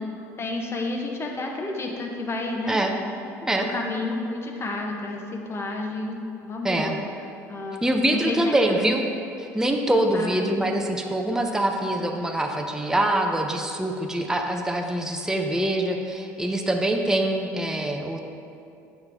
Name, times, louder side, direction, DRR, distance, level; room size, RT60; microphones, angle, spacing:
voice 1, 0.4-2.8 3.6-7.0 7.5-7.8 8.1-9.0 10.1-10.7, left 2 dB, 30° left, 1 dB, 1.0 m, -31 dB
voice 2, 6.6-6.9 7.8-9.0 9.5-18.2, right 1 dB, 5° right, 2 dB, 0.6 m, -24 dB
8.0 x 5.2 x 3.5 m, 2.5 s
hypercardioid pair, 70°, 8 cm